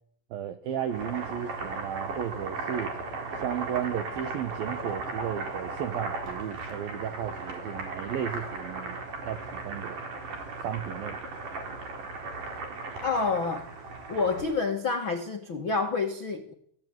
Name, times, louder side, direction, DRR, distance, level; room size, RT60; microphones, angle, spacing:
voice 1, 0.3-3.0 3.3-9.0 9.3-10.0 10.6-11.2, right 9 dB, 75° right, 9 dB, 2.1 m, -34 dB
Boiling, 0.7-14.6, right 3 dB, 40° right, 5.2 m, -37 dB
voice 2, 13.0-13.7 14.1-16.5, left 4 dB, 70° left, 3 dB, 1.1 m, -28 dB
24.5 x 17.5 x 9.4 m, 0.70 s
omnidirectional pair, 5.8 m